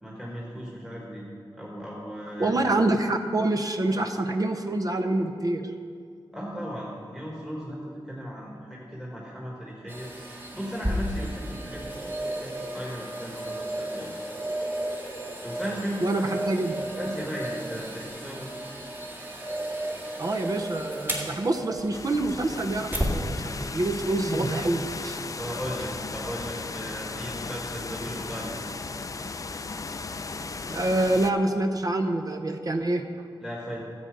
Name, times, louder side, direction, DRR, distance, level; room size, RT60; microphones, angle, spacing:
voice 1, 0.0-1.3 1.6-2.7 4.0-4.1 6.3-10.1 10.5-14.1 15.4-16.4 16.8-18.5 25.4-28.6 33.4-33.8, equal, 5° right, -4 dB, 1.7 m, -36 dB
voice 2, 2.4-5.6 16.0-16.8 20.2-25.2 30.7-33.0, right 2 dB, 45° right, 6 dB, 0.7 m, -26 dB
sound 1, 9.9-23.2 23.7-23.8, right 1 dB, 25° right, 1.8 m, -33 dB
sound 2, 21.9-31.3, left 4 dB, 40° left, 0.4 m, -36 dB
14.0 x 7.9 x 5.2 m, 2.3 s
wide cardioid pair, 125°, 9 cm